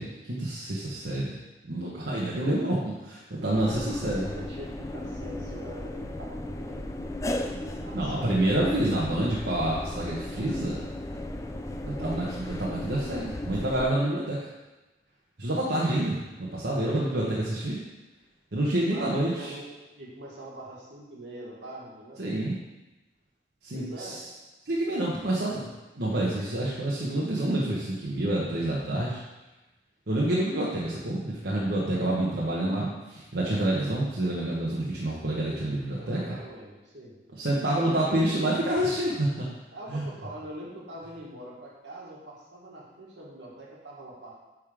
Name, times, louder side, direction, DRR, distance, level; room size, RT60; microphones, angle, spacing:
voice 1, 0.0-1.3 1.6-4.3 7.9-10.8 11.8-14.5 15.4-17.8 18.5-19.5 22.2-22.6 23.6-24.2 24.7-25.7 26.0-29.2 30.1-36.2 37.4-39.5 39.9-40.0, right 1 dB, 70° right, -6 dB, 1.2 m, -28 dB
sound 1, 3.5-13.9, left 1 dB, 15° left, 0.3 m, -35 dB
voice 2, 4.1-6.9 7.2-8.4 11.8-12.3 18.7-19.7 20.0-22.2 23.7-24.2 31.1-31.6 35.9-37.1 37.8-38.3 39.7-44.4, right 1 dB, 85° right, -3 dB, 1.9 m, -43 dB
9.6 x 3.7 x 4.9 m, 1.1 s
head